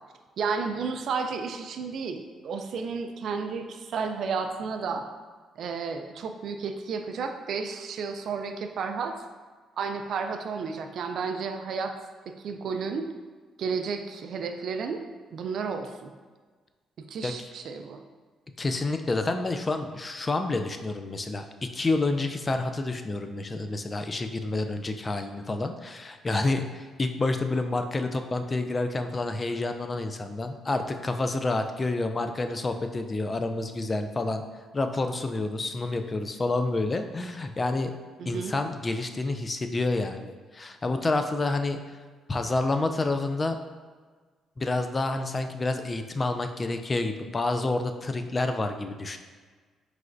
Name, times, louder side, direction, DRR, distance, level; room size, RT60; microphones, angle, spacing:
voice 1, 0.4-5.1 5.6-9.2 9.8-11.9 12.3-13.1 13.6-15.0 15.3-16.1 17.0-18.0 38.2-38.5, right 5 dB, 65° right, 6 dB, 0.4 m, -32 dB
voice 2, 18.6-21.5 21.7-34.4 34.7-37.9 38.3-41.8 42.3-43.6 44.6-49.2, left 2 dB, 30° left, 7 dB, 0.3 m, -28 dB
4.6 x 3.2 x 2.6 m, 1.4 s
cardioid pair, 90°, 0 cm